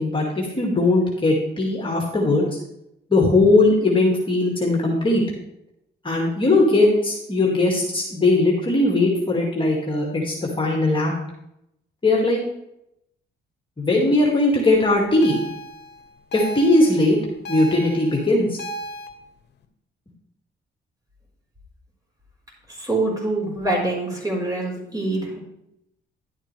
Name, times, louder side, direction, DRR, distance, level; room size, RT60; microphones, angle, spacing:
voice 1, 0.0-2.4 3.1-5.2 6.0-11.1 12.0-12.4 13.8-15.4 16.3-17.2 17.5-18.6, left 2 dB, 25° left, -2 dB, 2.1 m, -19 dB
sound 1, 15.2-19.1, right 1 dB, 60° left, 1.0 m, -35 dB
voice 2, 22.7-25.4, right 2 dB, 20° right, -2 dB, 4.3 m, -25 dB
11.0 x 8.7 x 3.3 m, 0.82 s
cardioid pair, 90°, 20 cm